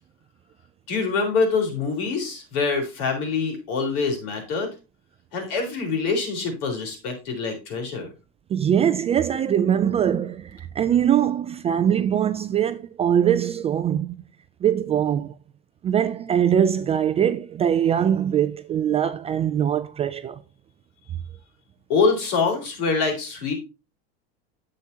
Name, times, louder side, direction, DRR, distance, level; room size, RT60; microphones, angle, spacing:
voice 1, 0.9-4.7 5.3-8.1 21.9-23.5, left 4 dB, 65° left, 4.0 m, -25 dB
voice 2, 8.5-14.2 14.6-15.3 15.8-20.4, right 9 dB, 20° right, 0.3 m, -22 dB
9.5 x 7.5 x 2.8 m
supercardioid pair, 130°, 30 cm